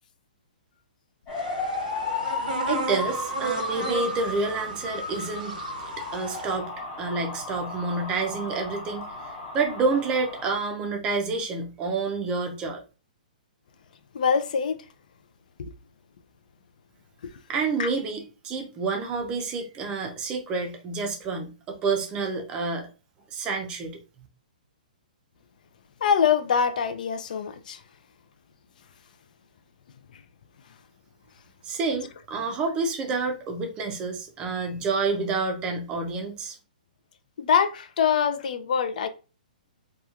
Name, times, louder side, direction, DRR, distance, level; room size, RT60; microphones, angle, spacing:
sound 1, 1.3-10.5, left 3 dB, 25° left, 0.8 m, -34 dB
sound 2, 1.3-6.6, right 5 dB, 65° right, 0.6 m, -35 dB
voice 1, 2.7-5.6 6.1-6.7 7.0-12.8 17.5-22.9 23.3-24.0 31.6-36.6, right 4 dB, 20° right, 0.5 m, -29 dB
voice 2, 14.1-14.8 15.6-15.7 17.2-17.3 17.8-17.9 26.0-27.8 37.4-39.1, left 7 dB, 65° left, 0.3 m, -24 dB
2.9 x 2.3 x 2.3 m
hypercardioid pair, 160°, 5 cm